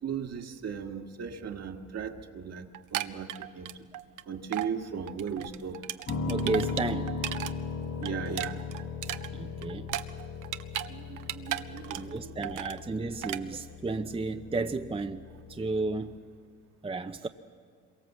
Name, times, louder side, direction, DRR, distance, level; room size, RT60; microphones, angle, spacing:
voice 1, 0.0-3.7 4.3-5.8 8.0-8.6 10.9-12.7 13.2-13.3, right 7 dB, 55° right, 4 dB, 2.0 m, -37 dB
sound 1, 2.7-4.2 4.5-4.7 5.1-7.5 7.8-10.9 11.2-12.2 12.4-12.8 13.2-13.4, right 13 dB, 80° right, 0.9 m, -35 dB
Piano, 6.1-16.2, left 5 dB, 60° left, 5.2 m, -38 dB
voice 2, 6.3-7.1 9.3-9.9 11.5-11.6 11.9-16.2 16.8-17.3, right 3 dB, 20° right, 7 dB, 0.8 m, -33 dB
26.5 x 23.0 x 7.5 m, 2.1 s
cardioid pair, 90°, 30 cm